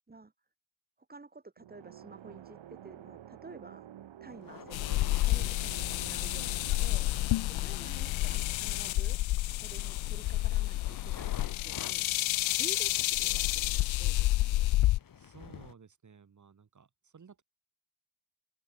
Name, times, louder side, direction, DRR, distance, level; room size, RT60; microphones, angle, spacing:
voice 1, 1.1-3.9 4.2-7.1 7.5-9.2 9.5-12.0 12.5-14.8, right 3 dB, 20° right, 3.4 m, -51 dB
sound 1, 1.6-9.2, right 11 dB, 65° right, 2.3 m, -51 dB
sound 2, 4.3-15.7, left 8 dB, 45° left, 2.0 m, -50 dB
sound 3, 4.7-15.0, left 17 dB, 75° left, 0.6 m, -29 dB
voice 2, 10.7-11.1 15.2-17.4, right 6 dB, 35° right, 3.7 m, -56 dB
open air
cardioid pair, 120°, 48 cm